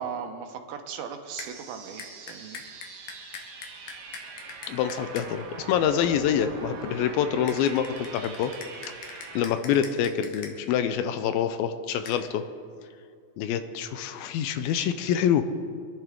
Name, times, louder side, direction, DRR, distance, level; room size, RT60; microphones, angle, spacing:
voice 1, 0.0-2.6, right 7 dB, 80° right, 6 dB, 2.9 m, -37 dB
sound 1, 1.3-9.4, right 4 dB, 60° right, 2.5 m, -42 dB
sound 2, 1.4-1.5 2.0-5.3 7.5-10.5 12.0-12.2, left 6 dB, 70° left, 2.8 m, -42 dB
voice 2, 4.7-7.9 8.1-8.5 8.9-9.0 9.4-12.4 13.4-15.4, left 9 dB, 90° left, 9 dB, 2.5 m, -26 dB
24.5 x 11.0 x 3.6 m, 2.3 s
omnidirectional pair, 4.3 m